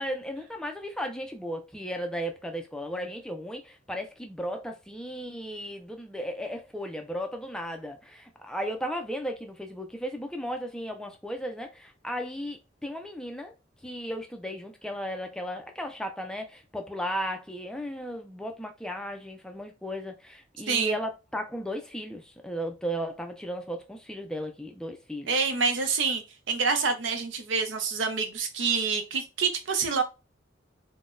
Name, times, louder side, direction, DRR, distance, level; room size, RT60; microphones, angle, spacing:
voice 1, 0.0-13.5 13.8-25.3, equal, 5° left, 0.3 m, -35 dB
voice 2, 25.3-26.2 26.5-30.0, right 5 dB, 80° right, 0.6 m, -27 dB
3.8 x 2.1 x 2.5 m
head